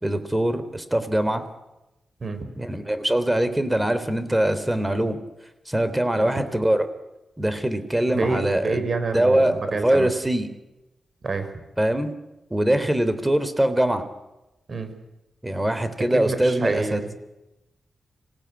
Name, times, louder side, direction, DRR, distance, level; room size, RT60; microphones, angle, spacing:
voice 1, 0.0-1.4 2.6-5.2 5.7-6.8 7.4-8.9 9.1-10.5 11.8-12.1 12.5-14.0 15.4-17.0, right 1 dB, 15° right, 11 dB, 3.3 m, -22 dB
voice 2, 2.2-2.5 6.2-6.3 8.1-10.1 11.2-11.5 14.7-14.9 16.0-17.1, right 3 dB, 55° right, 9 dB, 4.6 m, -27 dB
25.5 x 17.5 x 9.6 m, 0.99 s
cardioid pair, 50°, 0 cm